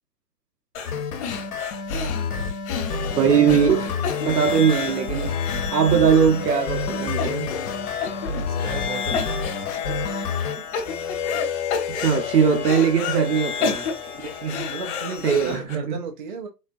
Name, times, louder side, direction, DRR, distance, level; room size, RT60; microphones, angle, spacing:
sound 1, 0.7-0.9 1.2-6.4 6.7-6.8 7.2-7.7 8.0-8.9 9.1-9.9 10.4-11.4 11.7-13.2 13.6-15.7, left 5 dB, 45° left, 1.2 m, -31 dB
sound 2, 0.9-10.6, left 4 dB, 65° left, 1.0 m, -29 dB
sound 3, 2.7-15.6, left 8 dB, 25° left, 0.6 m, -32 dB
voice 1, 3.1-3.9 4.2-5.4 5.7-7.5 11.9-14.7 15.2-15.8, right 7 dB, 75° right, 0.9 m, -20 dB
voice 2, 8.5-9.3 12.4-12.7 14.7-16.5, right 4 dB, 35° right, 0.4 m, -34 dB
4.3 x 2.3 x 2.6 m
hypercardioid pair, 130°, 49 cm